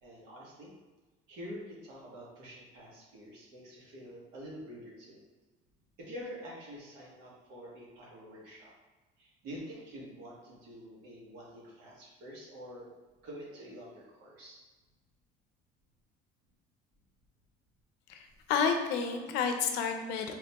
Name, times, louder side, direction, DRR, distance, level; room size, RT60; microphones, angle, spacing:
voice 1, 0.0-0.7 1.3-5.2 6.0-8.7 9.2-12.9 13.2-14.6, equal, 80° right, -4 dB, 1.4 m, -47 dB
voice 2, 18.1-20.3, left 6 dB, 70° left, 5 dB, 0.5 m, -30 dB
3.9 x 3.4 x 2.9 m, 1.2 s
cardioid pair, 175°, 18 cm